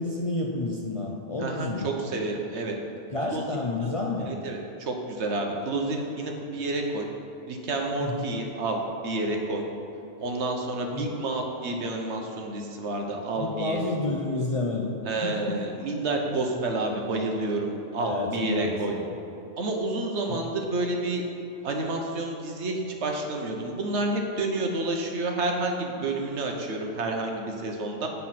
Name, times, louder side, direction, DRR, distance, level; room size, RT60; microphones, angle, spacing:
voice 1, 0.0-1.9 3.1-4.3 8.0-8.3 10.9-11.0 13.4-15.6 18.0-19.1, left 2 dB, 35° left, -2 dB, 0.5 m, -30 dB
voice 2, 1.4-2.8 3.3-3.9 4.2-7.1 7.5-9.6 10.2-13.8 15.1-18.9 19.6-21.2 21.6-28.1, right 2 dB, 65° right, 2 dB, 1.2 m, -29 dB
9.1 x 4.1 x 5.8 m, 2.9 s
omnidirectional pair, 1.3 m